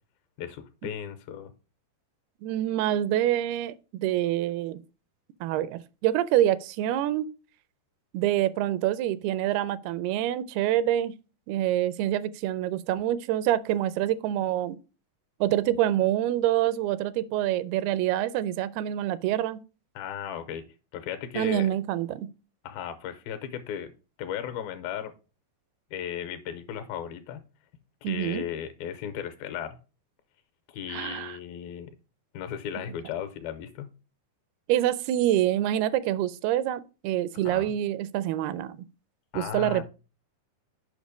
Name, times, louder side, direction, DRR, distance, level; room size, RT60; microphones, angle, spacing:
voice 1, 0.4-1.5 20.0-20.7 20.9-21.7 22.6-23.9 24.2-25.1 25.9-27.4 28.0-29.8 30.7-31.9 32.3-33.9 37.5-37.7 39.3-39.8, left 9 dB, 80° left, 2.5 m, -36 dB
voice 2, 2.4-4.8 5.4-7.3 8.1-11.1 11.5-14.8 15.4-19.6 21.4-22.3 28.0-28.4 30.9-31.4 34.7-38.8 39.3-39.8, right 12 dB, 85° right, 2.5 m, -26 dB
7.3 x 5.3 x 5.0 m
omnidirectional pair, 4.5 m